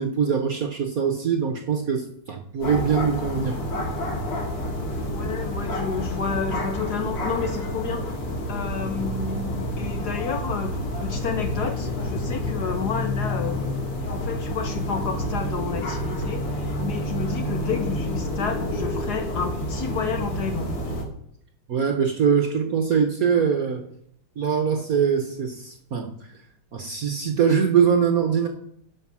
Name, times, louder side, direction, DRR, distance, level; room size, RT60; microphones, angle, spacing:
voice 1, 0.0-3.8 21.7-23.8 24.4-26.4 26.7-28.5, right 7 dB, 55° right, 5 dB, 1.0 m, -23 dB
sound 1, 2.6-21.1, left 1 dB, 90° left, 3.0 m, -29 dB
voice 2, 5.1-8.1 8.5-10.8 11.0-13.6 14.1-16.5 16.8-20.7, left 6 dB, 60° left, 6 dB, 1.2 m, -30 dB
11.5 x 5.4 x 6.1 m, 0.70 s
omnidirectional pair, 2.4 m